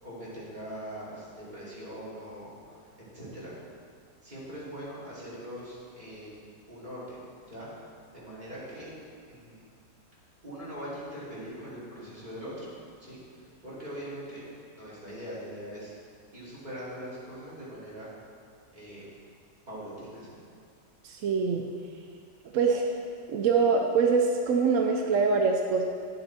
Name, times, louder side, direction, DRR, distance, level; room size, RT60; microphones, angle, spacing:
voice 1, 0.0-2.8 3.1-3.5 4.2-6.4 6.7-7.7 8.1-8.9 9.3-9.6 10.4-12.7 13.0-14.4 14.7-15.9 16.3-18.1 18.7-19.0 19.7-20.4, equal, 25° right, -9 dB, 2.8 m, -42 dB
voice 2, 21.0-21.6 22.5-22.9 23.3-25.8, right 5 dB, 70° right, 2 dB, 0.7 m, -24 dB
9.6 x 6.9 x 4.3 m, 2.2 s
omnidirectional pair, 1.9 m